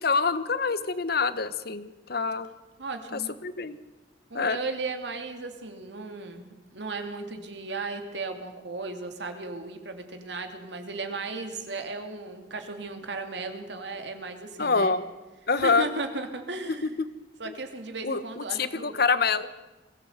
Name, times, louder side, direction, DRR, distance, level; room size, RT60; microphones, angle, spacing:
voice 1, 0.0-2.5 3.1-3.8 4.3-4.6 14.6-15.0 15.5-15.9 18.0-19.5, left 4 dB, 60° left, 13 dB, 1.1 m, -26 dB
voice 2, 2.8-3.3 4.3-14.9 15.5-17.0 17.4-18.9, right 3 dB, 70° right, 6 dB, 2.6 m, -36 dB
22.0 x 16.0 x 8.1 m, 1.1 s
head